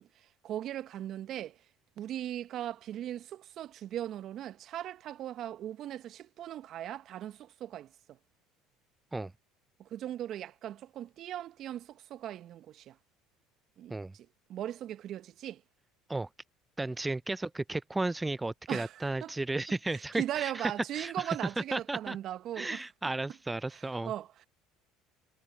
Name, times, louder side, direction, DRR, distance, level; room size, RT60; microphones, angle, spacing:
voice 1, 0.0-1.6 2.0-8.2 9.8-13.0 13.8-15.6 18.7-19.3 19.9-22.8 23.7-24.3, right 12 dB, 55° right, 1.1 m, -39 dB
voice 2, 16.8-21.4 21.7-22.2 22.6-24.1, right 2 dB, 15° right, 0.4 m, -34 dB
hypercardioid pair, 75°, 0 cm